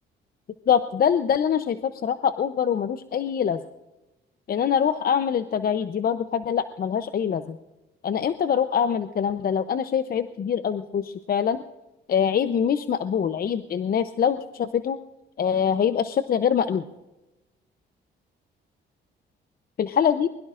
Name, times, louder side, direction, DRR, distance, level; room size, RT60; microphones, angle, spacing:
voice 1, 0.7-3.6 4.5-7.6 8.0-11.6 12.1-15.0 15.4-16.8 19.8-20.3, left 8 dB, 50° left, 11 dB, 0.7 m, -24 dB
22.5 x 21.5 x 2.5 m, 1.0 s
cardioid pair, 90°, 20 cm